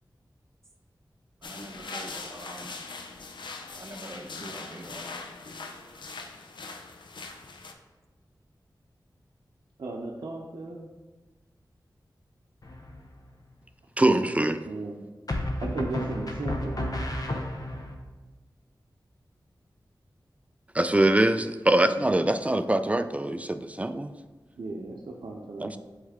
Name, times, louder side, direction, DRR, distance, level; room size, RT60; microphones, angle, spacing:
sound 1, 1.4-7.7, left 3 dB, 90° left, 0.5 m, -41 dB
voice 1, 1.4-2.8 3.7-5.1, right 1 dB, 40° right, 3 dB, 0.7 m, -44 dB
voice 2, 9.8-10.9 14.1-14.3 14.6-15.0 15.6-16.9 21.8-22.1 24.6-25.8, right 3 dB, 80° right, -3 dB, 0.6 m, -36 dB
sound 2, 12.6-13.2 15.3-17.9, left 1 dB, 50° left, 0.8 m, -32 dB
voice 3, 14.0-14.6 20.7-24.1 25.6-25.8, right 1 dB, 15° right, 10 dB, 0.3 m, -23 dB
8.1 x 3.2 x 3.6 m, 1.2 s
wide cardioid pair, 60°, 8 cm